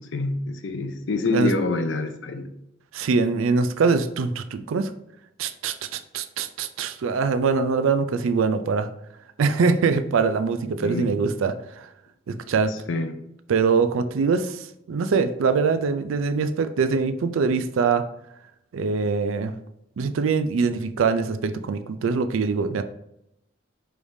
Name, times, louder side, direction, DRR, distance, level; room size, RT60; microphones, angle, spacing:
voice 1, 0.0-2.5 10.8-11.2 12.9-13.1, left 2 dB, 65° left, 8 dB, 0.5 m, -26 dB
voice 2, 2.9-4.9 5.4-8.9 9.4-11.9 12.3-12.7 13.5-18.1 18.7-19.5 20.0-22.8, right 5 dB, 80° right, 10 dB, 0.4 m, -23 dB
4.8 x 3.4 x 2.6 m, 0.80 s
head